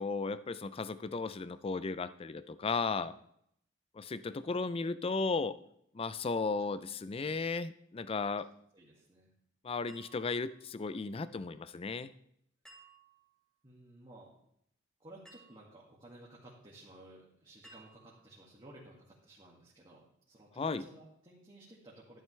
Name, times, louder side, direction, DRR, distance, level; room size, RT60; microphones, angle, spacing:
voice 1, 0.0-3.1 3.9-5.6 5.9-8.5 9.6-12.1 20.6-20.8, left 4 dB, 25° left, 15 dB, 0.4 m, -35 dB
voice 2, 2.6-3.1 8.2-8.3 8.7-9.3 13.6-14.3 15.0-22.2, right 1 dB, 25° right, -5 dB, 2.0 m, -56 dB
sound 1, 9.9-10.8 12.7-13.4 15.3-15.9 17.6-18.4, right 3 dB, 5° left, 2.8 m, -59 dB
12.0 x 11.0 x 3.3 m, 0.73 s
head